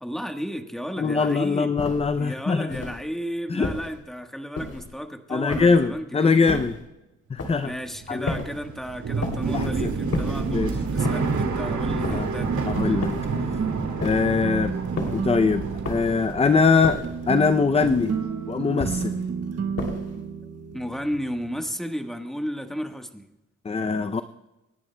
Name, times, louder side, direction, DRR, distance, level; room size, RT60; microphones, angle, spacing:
voice 1, 0.0-1.8 2.2-6.5 7.6-12.7 20.4-23.3, equal, ahead, 5 dB, 1.3 m, -33 dB
voice 2, 1.0-2.8 3.5-3.7 5.3-6.7 7.3-7.7 8.1-8.3 9.5-10.0 10.5-10.7 12.1-12.3 12.6-13.2 14.0-14.7 15.1-18.1 18.5-19.2 23.6-24.2, left 4 dB, 20° left, 10 dB, 0.4 m, -22 dB
sound 1, 1.8-2.2 2.7-3.1 3.6-4.0 4.6-5.0 5.5-5.9 6.5-6.8 7.4-7.7 8.3-8.7 9.2-9.6 10.1-10.5 11.0-11.5 12.0-12.5 13.0-13.4 14.0-14.4 15.0-15.3 15.8-16.3 16.8-17.2 17.8-18.2 18.8-19.2 19.8-20.2, left 2 dB, 55° left, 2.9 m, -32 dB
sound 2, 7.6-17.7 18.0-18.8, right 4 dB, 75° right, 2.1 m, -29 dB
sound 3, 12.4-21.7, right 6 dB, 55° right, 1.3 m, -32 dB
27.5 x 11.0 x 2.2 m, 0.99 s
wide cardioid pair, 105°, 30 cm